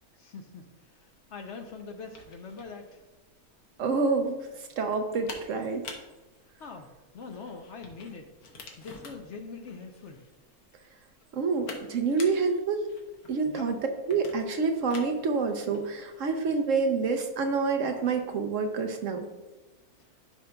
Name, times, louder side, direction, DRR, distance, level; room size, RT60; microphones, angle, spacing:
voice 1, 0.2-3.0 6.6-8.3 8.8-10.2 13.5-13.7, left 4 dB, 60° left, 4 dB, 0.9 m, -43 dB
sound 1, 0.9-18.3, left 3 dB, 85° left, 1.5 m, -49 dB
voice 2, 3.8-5.9 11.3-12.8 13.3-13.8 14.1-19.3, right 4 dB, 65° right, 5 dB, 1.0 m, -27 dB
11.0 x 5.4 x 2.3 m, 1.1 s
omnidirectional pair, 1.5 m